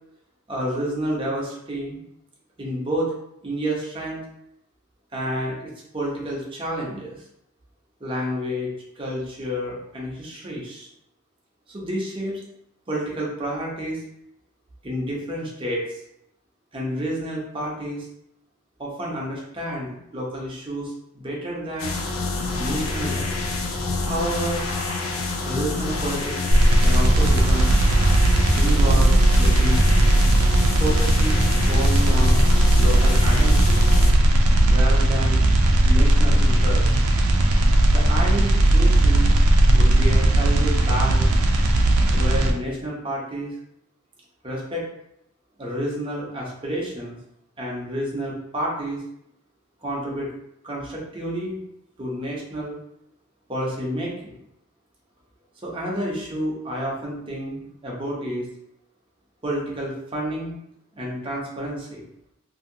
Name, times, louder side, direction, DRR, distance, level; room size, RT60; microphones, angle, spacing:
voice 1, 0.5-2.0 2.6-3.1 3.4-4.2 5.1-7.2 8.0-8.7 9.0-10.9 11.7-12.4 12.9-14.0 14.8-16.0 16.7-18.1 18.8-21.9 22.5-23.5 24.0-24.7 25.4-26.3 26.8-27.7 28.5-29.9 30.8-31.4 31.7-33.9 34.7-35.4 35.8-37.0 37.9-39.3 39.7-41.3 42.1-43.5 44.4-44.8 45.6-47.2 47.6-49.0 49.8-50.3 50.6-51.6 52.0-52.8 53.5-54.3 55.6-58.5 59.4-60.5 61.0-62.0, equal, 25° right, -4 dB, 0.7 m, -29 dB
sound 1, 21.8-34.1, left 3 dB, 70° left, 0.5 m, -28 dB
sound 2, 26.5-42.5, right 1 dB, 90° right, 0.5 m, -17 dB
2.7 x 2.7 x 2.6 m, 0.77 s
head